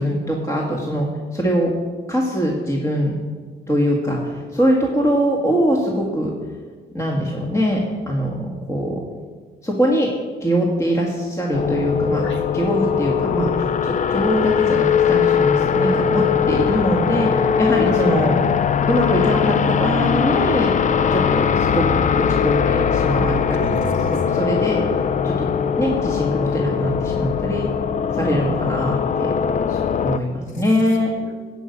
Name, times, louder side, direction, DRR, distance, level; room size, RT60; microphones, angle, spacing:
voice 1, 0.0-1.7 2.1-3.1 3.7-6.3 6.9-7.8 8.1-9.0 9.6-10.1 10.4-12.2 12.5-13.5 13.8-18.3 18.9-20.7 21.1-23.7 24.1-25.5 25.8-27.7 28.1-29.3 29.7-31.1, equal, 15° left, -2 dB, 1.7 m, -22 dB
sound 1, 11.5-30.2, left 7 dB, 40° left, 0.4 m, -20 dB
voice 2, 23.6-24.2 28.8-28.9 30.5-30.6 30.9-31.3, left 1 dB, 80° left, 3 dB, 2.1 m, -32 dB
11.0 x 5.3 x 8.2 m, 1.5 s
cardioid pair, 90°, 20 cm